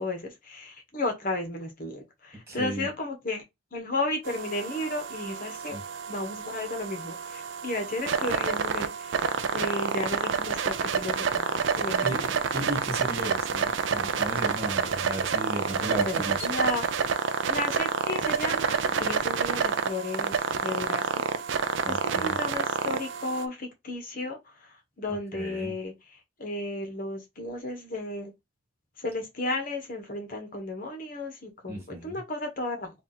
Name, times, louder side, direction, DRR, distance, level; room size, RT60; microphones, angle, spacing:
voice 1, 0.0-3.4 3.7-5.8 6.1-12.3 16.0-16.9 17.5-21.3 21.9-24.4 25.0-25.9 26.4-28.3 29.0-32.9, left 2 dB, 45° left, 1.3 m, -33 dB
voice 2, 2.5-2.9 5.5-5.8 12.0-16.5 21.8-22.4 25.1-25.8 31.7-32.2, right 1 dB, 15° right, 1.8 m, -35 dB
sound 1, 4.2-23.4, right 6 dB, 75° right, 0.4 m, -29 dB
3.4 x 2.6 x 4.1 m
head